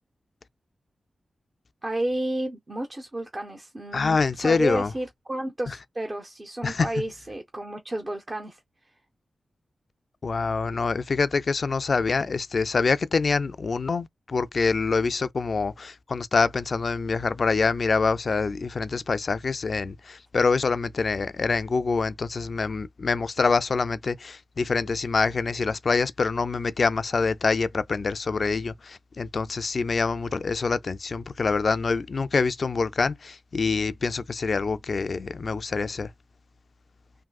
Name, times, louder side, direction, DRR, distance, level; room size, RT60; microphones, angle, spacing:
voice 1, 1.8-8.6, right 1 dB, 25° right, 0.6 m, -31 dB
voice 2, 3.9-4.9 6.6-6.9 10.2-36.1, left 4 dB, 50° left, 0.3 m, -25 dB
3.6 x 2.6 x 2.3 m
wide cardioid pair, 110°, 0 cm